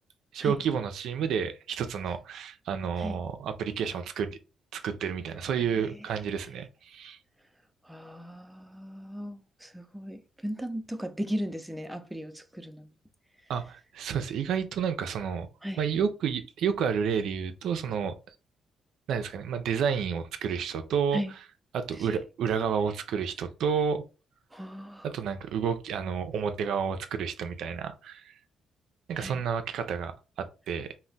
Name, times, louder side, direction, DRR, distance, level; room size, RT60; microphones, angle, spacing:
voice 1, 0.3-4.4 4.7-7.2 13.5-15.5 15.8-18.1 19.1-21.2 21.7-24.0 25.0-28.3 29.1-30.9, right 7 dB, 75° right, 0.3 m, -30 dB
voice 2, 5.6-6.1 7.8-12.9 15.6-15.8 21.1-21.3 21.9-22.2 24.5-25.1 29.1-29.4, equal, 5° right, 0.4 m, -37 dB
2.2 x 2.0 x 3.8 m
cardioid pair, 90°, 0 cm